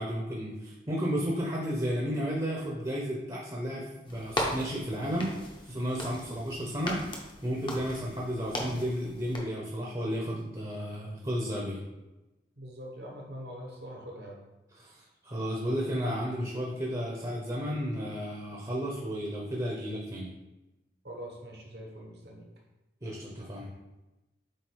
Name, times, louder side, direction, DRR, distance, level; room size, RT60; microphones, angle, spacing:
voice 1, 0.0-5.3 5.6-11.8 14.8-20.3 23.0-23.7, equal, 25° right, -3 dB, 0.9 m, -33 dB
sound 1, 4.1-9.4, left 1 dB, 25° left, 0.8 m, -38 dB
voice 2, 12.6-14.4 21.0-22.5, equal, 65° right, 0 dB, 1.3 m, -43 dB
7.8 x 2.6 x 4.6 m, 1.0 s
head